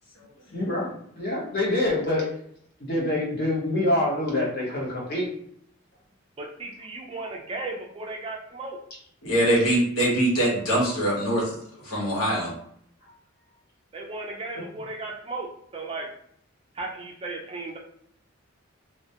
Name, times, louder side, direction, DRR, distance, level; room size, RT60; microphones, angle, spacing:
voice 1, 0.5-2.2 2.8-5.3, left 1 dB, 50° left, -4 dB, 0.8 m, -26 dB
voice 2, 6.4-8.8 13.9-16.1 16.8-17.8, right 2 dB, 25° right, 0 dB, 0.3 m, -35 dB
voice 3, 9.2-11.6 11.8-12.5, right 1 dB, 80° left, -5 dB, 1.0 m, -23 dB
2.1 x 2.1 x 2.7 m, 0.67 s
head